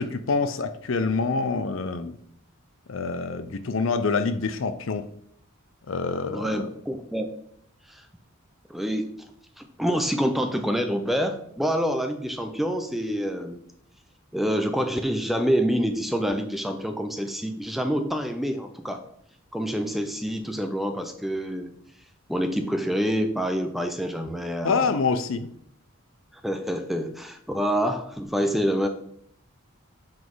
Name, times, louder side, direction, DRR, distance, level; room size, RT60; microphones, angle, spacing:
voice 1, 0.0-2.2 2.9-5.1 5.9-6.7 24.6-25.5, left 4 dB, 65° left, 11 dB, 0.5 m, -26 dB
voice 2, 6.3-7.3 7.9-8.0 8.7-9.1 9.6-13.6 14.3-19.0 19.5-21.7 22.3-24.9 26.4-28.9, equal, ahead, 6 dB, 0.5 m, -27 dB
7.3 x 4.0 x 4.7 m, 0.68 s
head